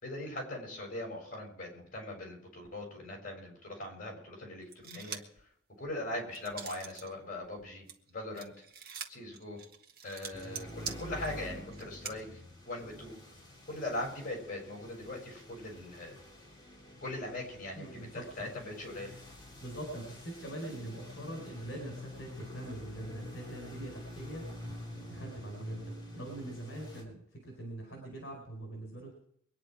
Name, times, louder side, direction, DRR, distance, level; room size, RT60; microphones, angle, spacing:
voice 1, 0.0-5.2 5.8-8.5 9.1-9.6 10.0-12.3 12.7-13.1 13.7-16.2 17.0-18.1 18.4-19.1, left 1 dB, 40° left, 1 dB, 6.7 m, -40 dB
sound 1, 4.7-5.4 5.8-7.1 7.4-12.1, right 6 dB, 45° right, 1.6 m, -44 dB
sound 2, 10.3-27.0, left 1 dB, 20° left, 3.8 m, -47 dB
voice 2, 17.8-18.5 19.6-24.4 24.9-29.1, right 1 dB, 60° left, 2 dB, 4.5 m, -43 dB
23.5 x 10.0 x 4.8 m, 0.66 s
head